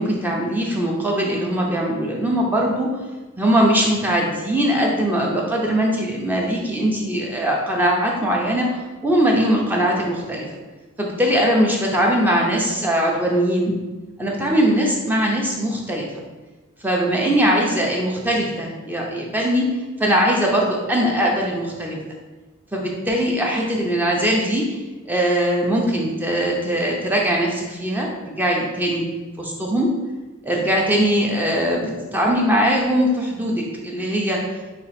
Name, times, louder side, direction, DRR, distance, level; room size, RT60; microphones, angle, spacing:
voice 1, 0.0-2.9 3.4-8.7 9.0-10.5 11.0-13.7 14.2-16.1 16.8-19.7 20.0-22.0 22.7-24.8 25.1-29.0 29.4-29.9 30.4-34.4, equal, 10° right, -2 dB, 0.5 m, -21 dB
4.2 x 2.4 x 4.1 m, 1.2 s
head